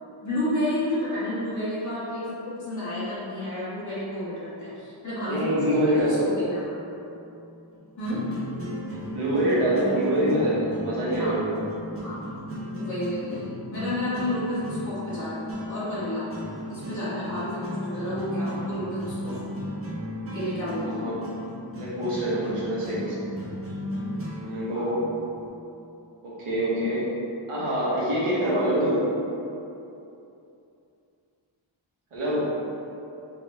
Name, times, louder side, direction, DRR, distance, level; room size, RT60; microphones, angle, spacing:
voice 1, 0.2-5.5 5.7-6.2 6.5-6.6 8.0-8.2 11.2-11.4 12.0-12.2 12.7-16.3 16.7-19.4 20.3-21.1 22.8-22.9 24.7-25.0 26.7-27.0 28.4-28.6, left 1 dB, 35° left, -12 dB, 1.4 m, -31 dB
voice 2, 5.3-6.2 9.1-11.5 20.8-21.2 21.7-23.2 24.4-25.0 26.2-27.1 27.5-29.0 32.1-32.4, right 1 dB, 90° right, -8 dB, 1.1 m, -25 dB
sound 1, 6.7-25.5, left 1 dB, 30° right, 0.6 m, -35 dB
4.0 x 2.3 x 3.1 m, 2.8 s
wide cardioid pair, 85°, 50 cm